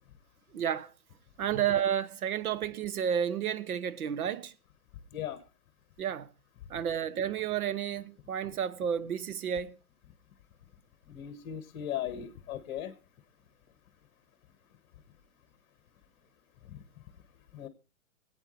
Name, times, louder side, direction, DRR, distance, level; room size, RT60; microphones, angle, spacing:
voice 1, 0.5-0.9 1.4-4.5 6.0-6.3 6.7-9.7, right 9 dB, 75° right, 1.0 m, -31 dB
voice 2, 11.1-12.9 17.5-17.7, left 10 dB, 30° left, 1.6 m, -37 dB
25.0 x 8.9 x 3.2 m
hypercardioid pair, 150°, 44 cm